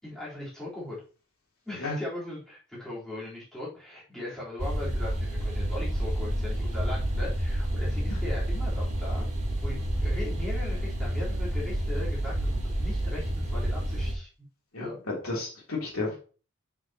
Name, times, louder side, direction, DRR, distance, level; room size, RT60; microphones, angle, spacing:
voice 1, 0.0-1.0 1.7-14.5 14.8-15.0, left 2 dB, ahead, -8 dB, 3.9 m, -39 dB
sound 1, 4.6-14.1, right 1 dB, 35° right, 3.5 m, -29 dB
voice 2, 14.7-16.2, left 3 dB, 70° left, -3 dB, 3.3 m, -32 dB
7.8 x 6.6 x 3.0 m, 0.36 s
head